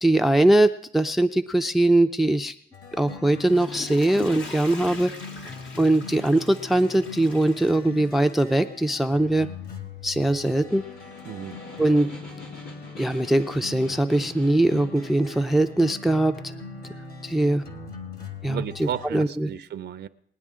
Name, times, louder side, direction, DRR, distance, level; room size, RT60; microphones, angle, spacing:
voice 1, 0.0-2.5 3.0-5.1 5.8-9.5 10.0-10.8 11.8-12.1 13.0-16.3 17.2-17.6 18.4-19.5, right 1 dB, ahead, 9 dB, 0.5 m, -21 dB
sound 1, 2.7-19.1, left 3 dB, 50° left, 2.4 m, -41 dB
Water / Toilet flush, 3.2-8.5 9.0-9.1, left 4 dB, 65° left, 1.8 m, -41 dB
Snare drum, 10.4-15.3, left 2 dB, 85° left, 3.1 m, -45 dB
voice 2, 11.2-11.6 18.5-20.1, right 10 dB, 60° right, 12 dB, 0.6 m, -33 dB
20.5 x 9.8 x 3.7 m, 0.67 s
cardioid pair, 90°, 20 cm